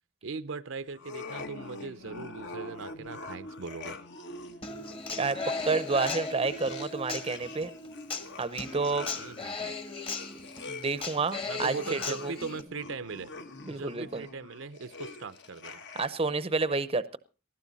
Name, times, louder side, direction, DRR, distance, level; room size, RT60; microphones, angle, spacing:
voice 1, 0.2-4.0 9.2-9.8 11.5-13.3 13.7-15.8, right 4 dB, 65° right, 13 dB, 0.7 m, -39 dB
sound 1, 0.9-16.3, left 3 dB, 60° left, 1.5 m, -45 dB
Human voice / Acoustic guitar, 4.6-12.6, left 3 dB, 25° left, 1.4 m, -37 dB
voice 2, 5.2-7.7 8.4-9.1 10.7-12.3 13.7-14.3 16.0-17.2, right 4 dB, 30° right, 15 dB, 0.7 m, -30 dB
19.5 x 13.0 x 4.1 m, 0.34 s
head